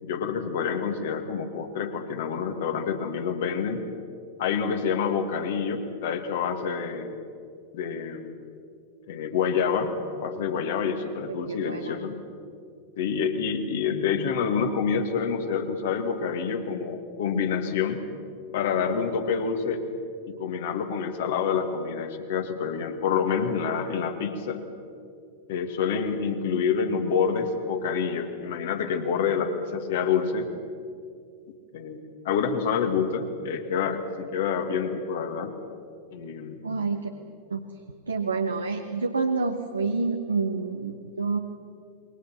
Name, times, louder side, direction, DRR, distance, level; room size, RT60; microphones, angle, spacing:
voice 1, 0.0-3.8 4.4-7.1 7.7-8.4 9.1-9.9 10.2-12.1 13.0-18.0 18.5-19.8 20.3-24.6 25.5-30.5 31.7-35.5 36.1-36.6, left 6 dB, 55° left, 6 dB, 2.3 m, -27 dB
voice 2, 11.5-12.0 36.6-37.1 37.5-37.6 38.1-41.4, right 4 dB, 75° right, 5 dB, 1.3 m, -28 dB
29.0 x 22.5 x 6.1 m, 2.4 s
figure-of-eight pair, 90°, 0 cm